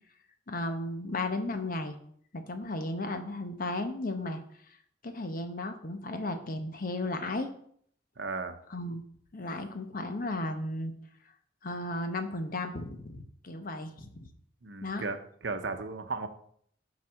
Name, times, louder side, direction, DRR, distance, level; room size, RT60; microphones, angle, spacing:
voice 1, 0.5-2.0 2.3-4.4 5.0-7.5 8.7-9.0 9.3-10.9 11.6-14.3 14.8-15.0, left 2 dB, 50° left, 7 dB, 0.9 m, -34 dB
voice 2, 8.2-8.6 14.6-15.2 15.4-16.3, right 3 dB, 70° right, 8 dB, 0.8 m, -35 dB
7.4 x 4.1 x 6.2 m, 0.64 s
head